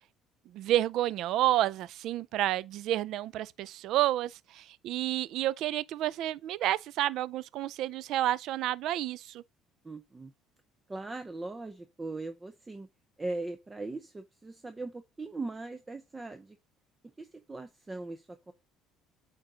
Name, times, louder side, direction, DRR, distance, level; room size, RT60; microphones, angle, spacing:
voice 1, 0.5-9.4, right 13 dB, 65° right, 0.4 m, -30 dB
voice 2, 9.8-10.3 10.9-12.9 13.2-16.6 17.2-18.5, right 2 dB, 15° right, 0.6 m, -39 dB
8.8 x 4.0 x 3.7 m
cardioid pair, 120°, 0 cm